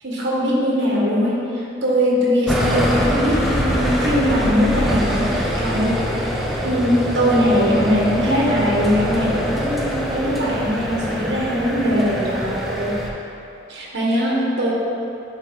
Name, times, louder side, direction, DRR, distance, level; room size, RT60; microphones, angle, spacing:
voice 1, 0.0-6.0 6.6-13.0 13.7-14.7, equal, 65° right, -5 dB, 1.4 m, -20 dB
sound 1, 2.5-13.1, equal, ahead, 0.6 m, -24 dB
9.9 x 4.1 x 3.8 m, 2.8 s
head